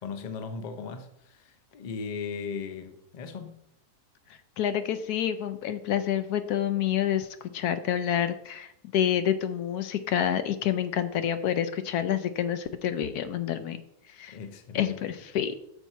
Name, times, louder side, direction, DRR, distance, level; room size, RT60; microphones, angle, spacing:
voice 1, 0.0-3.6 14.3-15.0, left 5 dB, 45° left, 0.6 m, -37 dB
voice 2, 4.6-7.3 7.5-13.8 14.2-14.4 14.7-15.5, left 10 dB, 75° left, 1.1 m, -28 dB
6.9 x 4.5 x 5.5 m
omnidirectional pair, 1.7 m